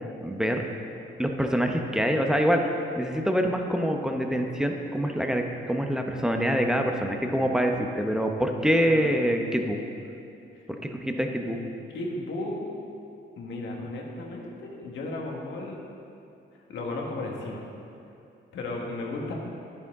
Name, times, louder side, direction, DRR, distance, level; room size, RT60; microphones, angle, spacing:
voice 1, 0.2-0.6 1.2-2.6 3.0-9.8 10.7-11.6, equal, 5° right, 3 dB, 0.9 m, -25 dB
voice 2, 11.9-12.7 13.4-15.8 16.7-17.6 18.5-19.3, left 2 dB, 70° left, -1 dB, 1.7 m, -34 dB
10.5 x 9.4 x 3.7 m, 2.7 s
cardioid pair, 90°, 20 cm